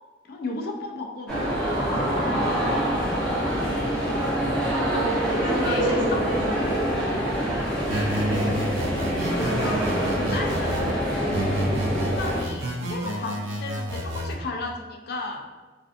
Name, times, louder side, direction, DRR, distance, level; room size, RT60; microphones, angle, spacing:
voice 1, 0.3-2.4 5.5-6.3 9.4-10.8 12.0-15.5, left 3 dB, 55° left, 1 dB, 0.4 m, -35 dB
sound 1, 1.3-12.4, equal, 5° left, 0.6 m, -25 dB
voice 2, 2.8-3.2 5.0-6.0 6.3-6.7 7.9-8.6 9.8-10.0, equal, 45° right, -6 dB, 0.8 m, -35 dB
sound 2, 7.9-10.9 11.3-14.3, right 1 dB, 90° right, 0.4 m, -30 dB
2.5 x 2.4 x 2.4 m, 1.3 s
head